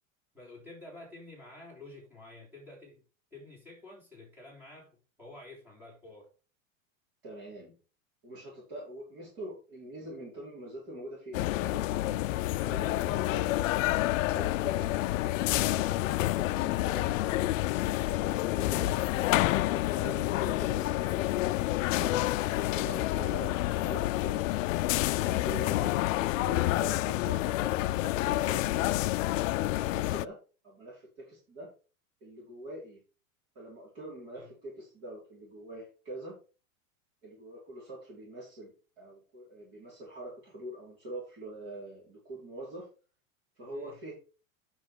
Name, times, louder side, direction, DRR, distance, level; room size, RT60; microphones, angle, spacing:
voice 1, 0.3-3.0 3.3-6.3 23.2-23.5 34.3-34.5 43.7-43.9, left 2 dB, 5° right, 3.2 m, -50 dB
voice 2, 7.2-7.8 8.2-13.7 14.3-17.3 18.0-22.2 22.7-23.5 23.8-24.6 25.2-26.0 26.4-29.1 29.6-30.4 30.6-31.7 32.2-33.0 33.5-36.3 37.2-42.9 43.5-44.1, right 1 dB, 30° right, 5.1 m, -44 dB
sound 1, 11.3-30.3, left 16 dB, 70° left, 0.5 m, -28 dB
9.9 x 5.9 x 5.0 m
supercardioid pair, 180°, 41 cm